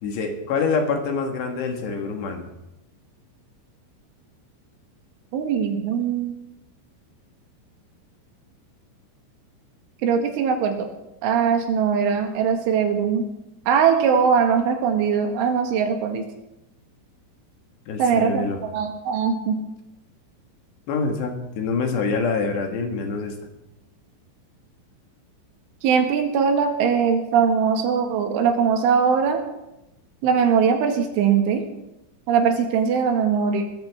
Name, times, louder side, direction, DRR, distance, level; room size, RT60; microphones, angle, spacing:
voice 1, 0.0-2.5 17.9-18.6 20.9-23.4, left 4 dB, 70° left, 4 dB, 3.6 m, -25 dB
voice 2, 5.3-6.4 10.0-10.9 11.2-13.3 13.7-16.2 18.0-19.6 25.8-29.4 30.2-31.6 32.3-33.6, right 6 dB, 85° right, 4 dB, 4.2 m, -21 dB
20.5 x 14.5 x 3.6 m, 0.93 s
omnidirectional pair, 5.4 m